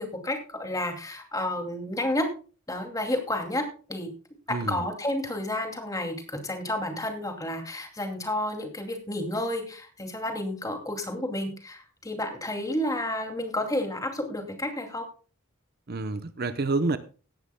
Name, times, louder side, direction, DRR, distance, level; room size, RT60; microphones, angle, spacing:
voice 1, 0.0-2.3 2.7-4.1 4.5-15.1, left 1 dB, 15° left, 4 dB, 2.5 m, -31 dB
voice 2, 4.5-4.8 15.9-17.0, right 3 dB, 45° right, 11 dB, 0.8 m, -28 dB
17.5 x 11.5 x 2.2 m, 0.36 s
head